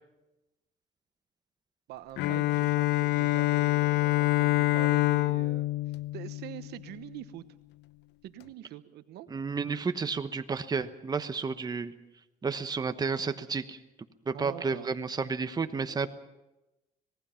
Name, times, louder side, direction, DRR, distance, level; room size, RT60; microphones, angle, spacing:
voice 1, 1.9-5.7 6.1-7.4 8.2-9.3 14.3-14.9, right 13 dB, 80° right, 11 dB, 1.1 m, -45 dB
Bowed string instrument, 2.2-7.0, left 18 dB, 85° left, 0.8 m, -26 dB
voice 2, 9.3-11.9 12.4-13.8 14.2-16.1, right 5 dB, 25° right, 9 dB, 1.1 m, -31 dB
25.5 x 19.0 x 5.8 m, 1.0 s
cardioid pair, 110°, 17 cm